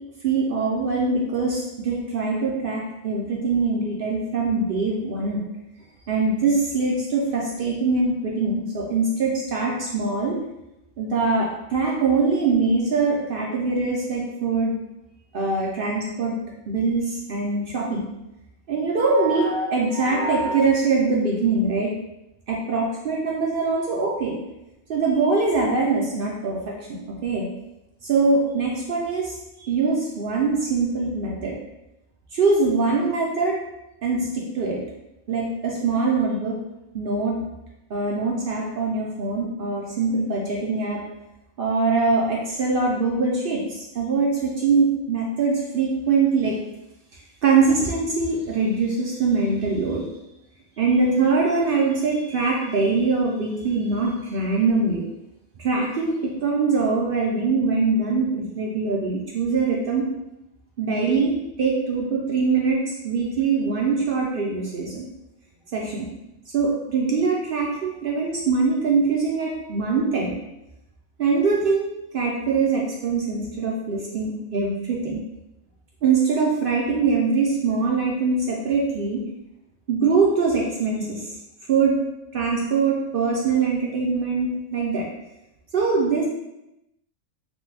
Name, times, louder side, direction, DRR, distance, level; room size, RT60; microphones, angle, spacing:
voice 1, 0.2-5.4 6.1-10.4 11.0-14.7 15.3-16.4 16.7-18.1 18.7-21.9 22.5-24.4 24.9-27.5 28.0-29.3 29.6-31.6 32.3-33.6 34.0-34.8 35.3-36.6 36.9-37.4 37.9-41.0 41.6-46.6 47.4-50.0 50.8-55.0 55.6-60.1 60.8-65.0 65.7-66.1 66.5-70.3 71.2-75.2 76.0-79.2 79.9-81.3 81.7-82.0 82.3-85.1 85.7-86.2, right 4 dB, 60° right, -3 dB, 0.6 m, -23 dB
3.0 x 2.2 x 3.2 m, 0.90 s
omnidirectional pair, 1.3 m